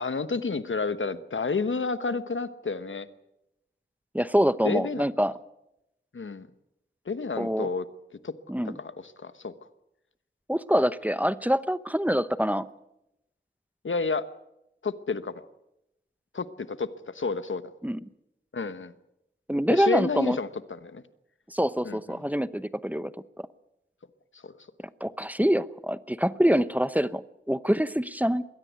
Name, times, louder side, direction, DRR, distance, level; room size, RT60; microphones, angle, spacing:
voice 1, 0.0-3.1 4.6-5.1 6.1-6.5 7.1-7.8 8.2-8.3 8.8-9.5 13.8-14.2 14.8-15.4 16.3-17.6 18.5-18.9 19.7-21.0 21.8-22.2 24.4-24.5, left 4 dB, 85° left, 13 dB, 1.1 m, -30 dB
voice 2, 4.1-5.3 7.4-7.7 8.5-8.8 10.5-12.7 17.8-18.0 19.5-20.4 21.5-23.1 23.4-23.5 25.0-28.4, equal, 10° right, 15 dB, 0.8 m, -25 dB
22.0 x 16.5 x 8.2 m, 0.85 s
wide cardioid pair, 45°, 20 cm